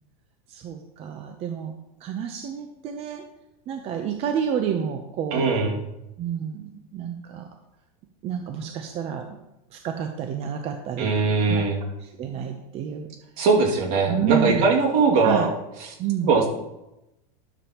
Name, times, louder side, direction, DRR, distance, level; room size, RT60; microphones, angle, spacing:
voice 1, 0.5-1.7 2.0-3.2 3.7-5.5 6.2-7.5 8.2-9.2 9.7-11.1 11.5-11.6 12.2-13.1 14.1-14.6 15.2-15.5 16.0-16.3, right 8 dB, 30° right, 5 dB, 0.6 m, -29 dB
voice 2, 5.3-5.8 11.0-11.8 13.4-15.5 15.8-16.5, right 4 dB, 60° right, 0 dB, 2.3 m, -21 dB
12.0 x 7.2 x 2.9 m, 0.92 s
supercardioid pair, 155°, 21 cm